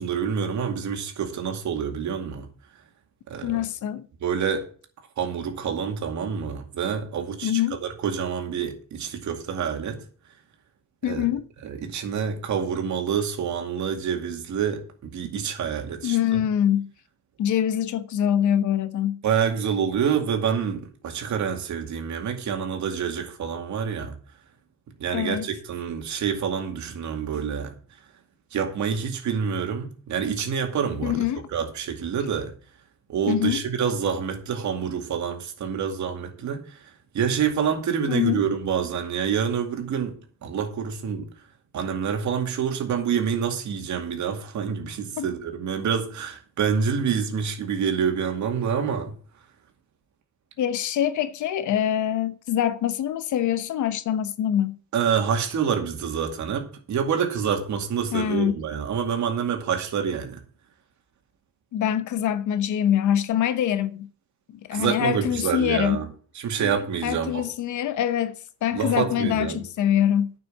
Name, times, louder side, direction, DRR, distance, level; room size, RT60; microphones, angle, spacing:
voice 1, 0.0-2.5 3.3-3.6 4.2-4.7 5.2-10.0 11.1-11.3 11.6-16.4 19.2-24.2 25.0-27.7 28.5-31.2 31.5-32.5 33.1-36.9 37.1-41.3 41.7-49.1 54.9-60.4 64.7-66.1 66.4-67.4 68.7-69.6, right 7 dB, 70° right, 2.3 m, -27 dB
voice 2, 3.4-4.1 7.4-7.8 11.0-11.5 16.0-16.9 17.4-19.2 25.1-25.5 31.0-31.5 33.3-33.6 38.1-38.4 45.2-45.3 50.6-54.8 58.1-58.5 61.7-64.1 64.6-66.1 66.6-66.8 67.0-70.3, left 10 dB, 75° left, 1.0 m, -24 dB
9.5 x 6.0 x 7.8 m
cardioid pair, 90°, 30 cm